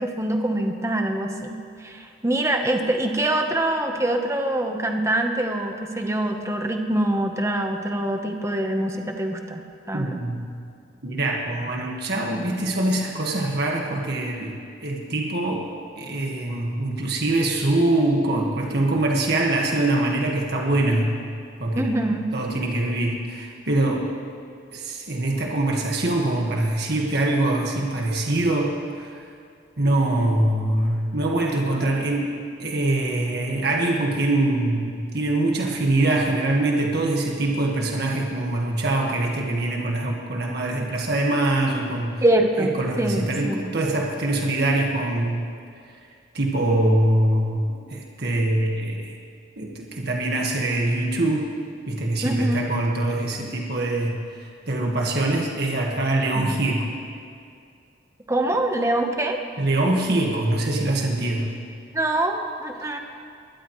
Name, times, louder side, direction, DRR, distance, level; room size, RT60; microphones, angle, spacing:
voice 1, 0.0-9.6 9.9-10.2 21.7-22.3 42.2-43.6 52.2-52.7 56.3-56.6 58.3-59.4 61.9-63.0, right 1 dB, 15° right, 3 dB, 1.0 m, -24 dB
voice 2, 9.9-10.5 11.0-15.6 16.0-21.2 21.6-21.9 22.3-24.1 24.7-29.2 29.8-32.3 32.6-42.2 42.6-45.5 46.3-49.1 49.6-51.5 51.9-56.9 59.6-61.5 62.8-62.9, right 2 dB, 55° right, -1 dB, 1.7 m, -23 dB
21.0 x 21.0 x 3.2 m, 2.3 s
head